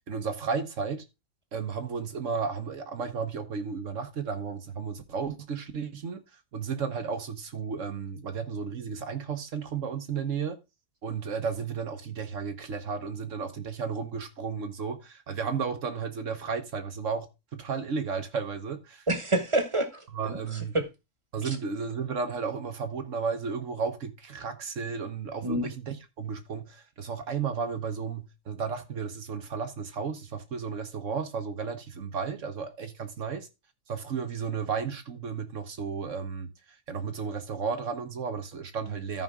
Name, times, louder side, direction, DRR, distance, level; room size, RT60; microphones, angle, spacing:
voice 1, 0.1-1.0 1.5-6.2 6.5-10.6 11.0-17.3 17.5-19.0 20.1-20.7 21.3-33.5 33.9-36.5 36.9-39.2, right 5 dB, 65° right, 1.4 m, -33 dB
voice 2, 19.1-20.8 21.4-21.6 25.4-25.7, right 1 dB, 20° right, 1.4 m, -28 dB
13.0 x 5.3 x 3.6 m
omnidirectional pair, 1.5 m